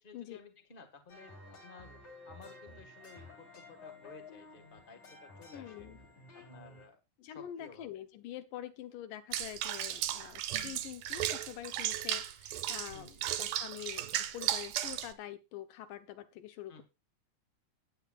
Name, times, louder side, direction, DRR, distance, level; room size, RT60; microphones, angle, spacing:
voice 1, 0.0-5.9 6.3-7.0 7.3-7.9 12.9-13.2 16.7-16.8, left 4 dB, 35° left, 7 dB, 0.8 m, -55 dB
sound 1, 1.1-6.9, left 2 dB, 50° left, 4.9 m, -53 dB
voice 2, 5.5-6.0 7.2-16.8, left 12 dB, 70° left, 11 dB, 2.4 m, -46 dB
Water / Bathtub (filling or washing), 9.3-15.1, right 12 dB, 85° right, 2.7 m, -35 dB
17.0 x 10.5 x 2.5 m, 0.25 s
omnidirectional pair, 4.2 m